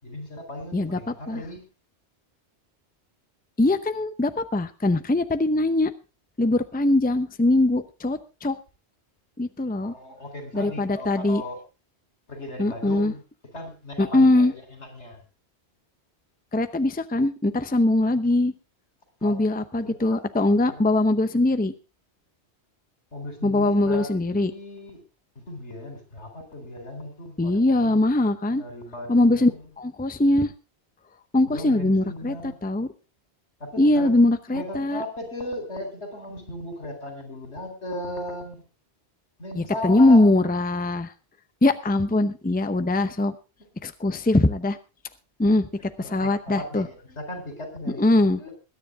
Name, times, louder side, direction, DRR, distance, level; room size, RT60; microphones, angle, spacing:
voice 1, 0.0-1.6 9.8-11.6 12.3-13.2 13.5-15.2 19.2-19.4 19.8-20.2 20.7-20.8 23.1-25.0 25.3-28.0 28.6-29.6 31.5-32.6 33.6-34.2 34.5-38.6 39.4-40.2 46.0-48.5, left 1 dB, 85° left, 6 dB, 4.6 m, -37 dB
voice 2, 0.7-1.4 3.6-5.9 6.4-8.6 9.4-9.9 10.5-11.4 12.6-13.1 14.0-14.5 16.5-18.5 19.2-21.7 23.4-24.5 27.4-28.6 29.1-29.5 29.8-30.5 31.3-32.9 33.8-35.0 39.5-41.1 41.6-43.4 43.8-44.8 45.4-46.9 48.0-48.4, left 2 dB, 10° left, 10 dB, 0.7 m, -21 dB
21.5 x 10.0 x 3.6 m, 0.31 s
omnidirectional pair, 1.1 m